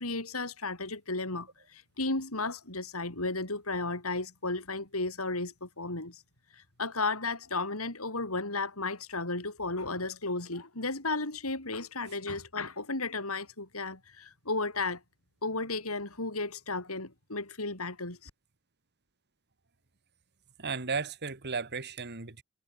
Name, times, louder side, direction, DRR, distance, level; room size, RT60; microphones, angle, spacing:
voice 1, 0.0-6.2 6.5-15.0 15.4-18.3, left 3 dB, 80° left, 6.1 m, -34 dB
voice 2, 20.6-22.4, right 4 dB, 50° right, 2.2 m, -34 dB
head